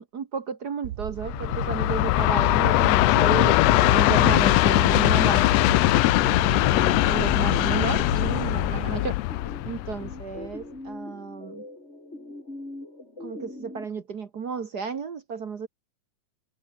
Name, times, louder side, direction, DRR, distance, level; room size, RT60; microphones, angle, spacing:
voice 1, 0.0-5.4 6.2-9.2 9.6-11.6 13.2-15.7, right 6 dB, 45° right, 1.3 m, -32 dB
sound 1, 0.8-8.8, right 13 dB, 65° right, 1.7 m, -37 dB
Train, 1.2-10.5, left 18 dB, 80° left, 1.6 m, -21 dB
sound 2, 2.6-13.9, left 2 dB, 20° left, 6.2 m, -42 dB
open air
omnidirectional pair, 3.4 m